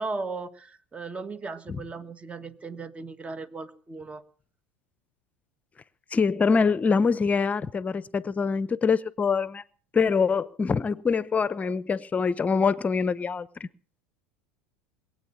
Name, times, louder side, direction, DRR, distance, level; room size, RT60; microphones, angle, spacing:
voice 1, 0.0-4.2, right 3 dB, 20° right, 1.6 m, -36 dB
voice 2, 6.1-9.6 9.9-13.7, left 5 dB, 25° left, 0.9 m, -24 dB
22.0 x 8.8 x 7.3 m
hypercardioid pair, 85°, 6 cm